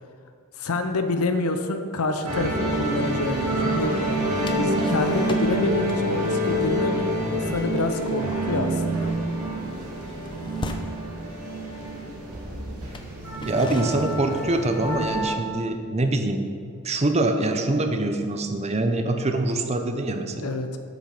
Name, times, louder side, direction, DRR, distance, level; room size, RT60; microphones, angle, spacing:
voice 1, 0.6-3.9 4.6-6.9 7.3-9.1 20.4-20.8, left 2 dB, 70° left, 7 dB, 0.6 m, -27 dB
sound 1, 2.2-15.3, right 1 dB, 90° right, 2.3 m, -27 dB
sound 2, 4.5-5.6 5.9-6.2 6.5-6.7 7.1-7.4 7.7-8.0 8.3-11.0 11.8-11.9 12.8-15.1, left 2 dB, 20° left, 0.5 m, -39 dB
voice 2, 13.4-16.4 16.8-20.5, right 2 dB, 30° right, 6 dB, 0.7 m, -24 dB
8.5 x 5.8 x 5.9 m, 2.3 s
head